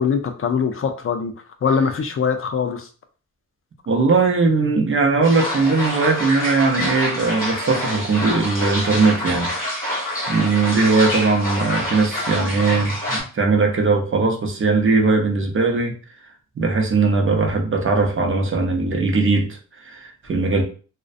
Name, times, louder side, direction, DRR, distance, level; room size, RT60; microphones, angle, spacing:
voice 1, 0.0-1.3 1.6-2.9, left 6 dB, 45° left, 6 dB, 0.4 m, -22 dB
voice 2, 3.9-9.5 10.3-15.9 16.6-20.6, right 3 dB, 40° right, 1 dB, 0.5 m, -19 dB
sound 1, 5.2-13.2, equal, 25° left, 1.0 m, -26 dB
2.5 x 2.1 x 2.4 m, 0.37 s
wide cardioid pair, 165°, 31 cm